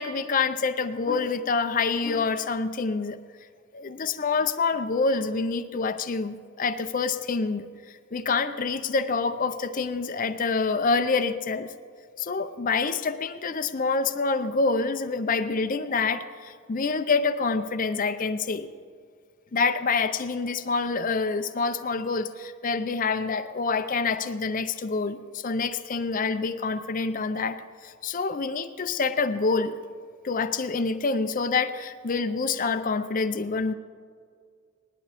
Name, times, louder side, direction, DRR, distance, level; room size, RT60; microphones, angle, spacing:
voice 1, 0.0-3.2 3.7-11.7 12.2-18.7 19.5-29.8 30.2-33.7, left 4 dB, 40° left, 9 dB, 0.5 m, -27 dB
19.0 x 11.5 x 3.4 m, 2.1 s
head